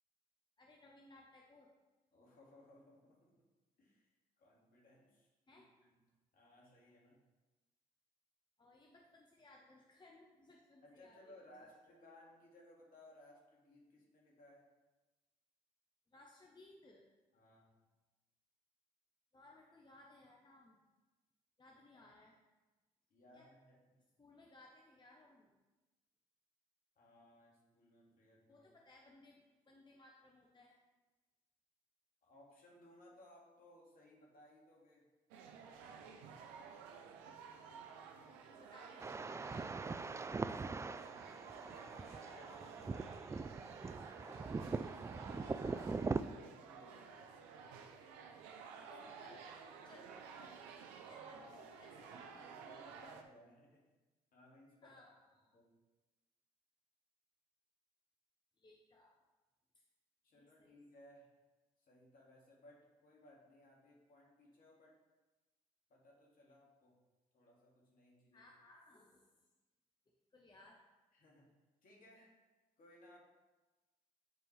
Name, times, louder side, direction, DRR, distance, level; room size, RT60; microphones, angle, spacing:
voice 1, 0.6-1.7 5.5-5.7 8.6-11.3 11.9-12.0 16.1-17.0 19.3-20.8 21.6-22.3 23.3-23.5 24.2-25.5 28.5-30.8 37.9-40.3 45.6-45.9 48.9-49.4 49.8-50.5 51.1-52.8 54.8-55.2 58.6-59.2 60.3-60.7 68.3-69.3 70.3-70.8, left 2 dB, 25° left, -1 dB, 1.1 m, -62 dB
voice 2, 2.1-3.4 3.8-6.0 6.3-7.2 10.8-14.7 17.3-17.7 23.1-23.8 27.0-28.7 32.2-35.1 40.6-41.3 41.7-43.4 45.4-45.8 46.3-47.1 51.3-53.8 54.3-55.0 55.5-55.8 60.2-61.3 61.8-65.0 65.9-67.0 67.3-68.5 71.1-71.5 71.8-72.4 72.8-73.2, left 1 dB, 55° left, -3 dB, 2.2 m, -63 dB
sound 1, 35.3-53.2, right 6 dB, 80° right, 0.6 m, -53 dB
sound 2, 39.0-46.2, right 4 dB, 15° right, 0.3 m, -42 dB
9.0 x 4.4 x 3.4 m, 1.1 s
hypercardioid pair, 50°, 17 cm